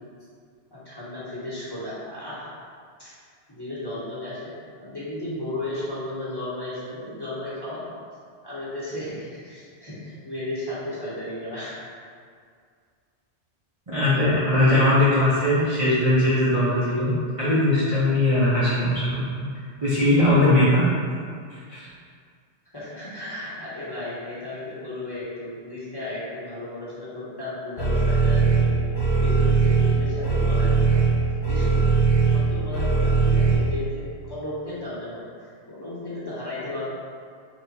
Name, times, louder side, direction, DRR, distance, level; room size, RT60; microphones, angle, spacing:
voice 1, 0.7-2.5 3.0-3.1 3.5-4.5 4.8-7.9 8.4-11.7 22.7-28.8 29.2-31.0 31.5-36.9, left 1 dB, 20° left, -11 dB, 1.0 m, -34 dB
voice 2, 13.9-19.5 19.8-20.8 21.7-21.9, left 1 dB, 30° right, -12 dB, 0.7 m, -20 dB
sound 1, 27.8-33.5, right 4 dB, 50° left, 1.4 m, -20 dB
3.4 x 2.8 x 4.1 m, 2.1 s
omnidirectional pair, 1.2 m